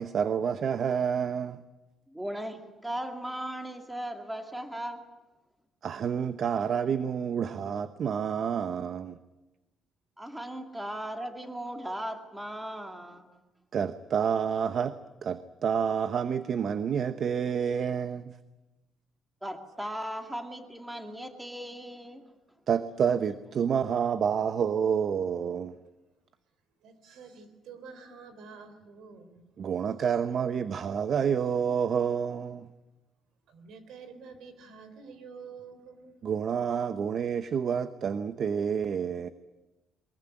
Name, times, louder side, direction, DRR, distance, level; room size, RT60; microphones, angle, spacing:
voice 1, 0.0-1.6 5.8-9.2 13.7-15.0 15.2-18.4 22.7-25.8 29.6-32.7 36.2-39.3, right 7 dB, 45° right, 12 dB, 0.9 m, -29 dB
voice 2, 2.1-5.0 10.2-13.3 19.4-22.3, right 1 dB, 5° right, 5 dB, 2.3 m, -37 dB
voice 3, 26.8-29.4 33.5-36.2, right 5 dB, 75° right, 10 dB, 4.0 m, -48 dB
23.0 x 21.5 x 10.0 m, 1.1 s
cardioid pair, 145°, 0 cm